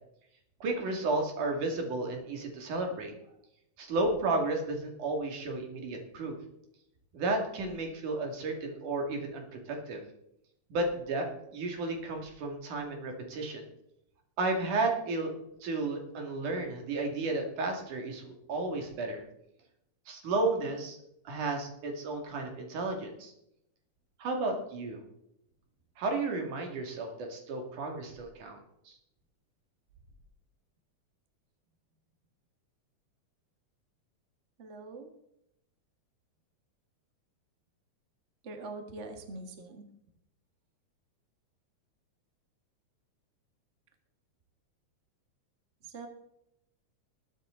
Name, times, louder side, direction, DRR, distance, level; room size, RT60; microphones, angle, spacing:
voice 1, 0.6-3.1 3.8-6.3 7.1-10.0 10.7-11.3 11.5-13.6 14.4-15.3 15.6-19.2 20.1-21.0 21.3-23.3 24.2-25.0 26.0-28.6 28.9-29.0, right 2 dB, 80° right, 2 dB, 3.8 m, -33 dB
voice 2, 34.6-35.1 38.4-39.8 45.9-46.1, right 2 dB, 30° right, 5 dB, 1.3 m, -43 dB
20.5 x 9.3 x 3.8 m, 0.79 s
omnidirectional pair, 3.5 m